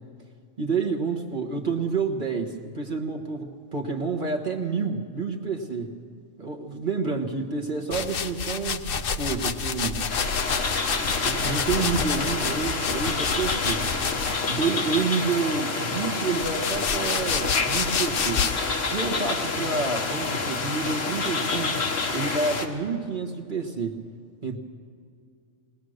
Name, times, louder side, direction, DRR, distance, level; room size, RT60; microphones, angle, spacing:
voice 1, 0.6-6.0 6.4-10.0 11.2-13.9 14.5-18.5 18.8-21.8 22.1-24.0 24.4-24.6, right 4 dB, 40° right, 0 dB, 1.4 m, -29 dB
sound 1, 7.9-14.7 15.5-18.7, left 6 dB, 50° left, 0.9 m, -29 dB
sound 2, 10.1-22.7, left 4 dB, 80° left, 1.8 m, -28 dB
21.0 x 20.0 x 6.5 m, 2.3 s
omnidirectional pair, 1.3 m